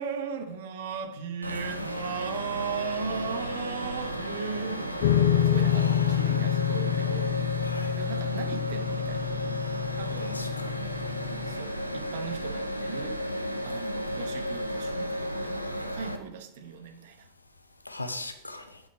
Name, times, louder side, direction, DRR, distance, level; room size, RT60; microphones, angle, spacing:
voice 1, 0.0-7.4 7.9-9.3 9.9-10.5 11.5-13.3 13.6-17.3, right 6 dB, 55° right, 0.9 m, -37 dB
sound 1, 1.4-16.2, equal, 90° right, 0.6 m, -33 dB
sound 2, 5.0-11.6, left 10 dB, 55° left, 0.4 m, -27 dB
voice 2, 5.4-6.3 7.6-7.9 10.3-10.7 17.9-18.8, left 2 dB, 85° left, 0.7 m, -39 dB
7.0 x 5.6 x 4.7 m
figure-of-eight pair, 90°, 0 cm